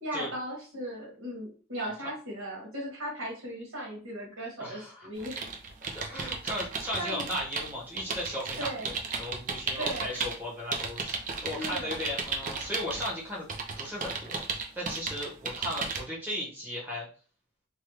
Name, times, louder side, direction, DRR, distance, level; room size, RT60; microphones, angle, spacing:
voice 1, 0.0-5.4 6.9-7.2 8.6-8.9 9.8-10.2 11.3-12.0, right 1 dB, 75° right, -3 dB, 1.6 m, -37 dB
voice 2, 4.6-4.9 5.9-13.5 13.8-14.4 14.7-17.1, left 1 dB, 10° right, -6 dB, 1.2 m, -36 dB
sound 1, 5.2-10.4 10.7-13.1 13.5-16.0, right 4 dB, 40° right, 0.5 m, -34 dB
3.2 x 2.3 x 3.0 m, 0.39 s
head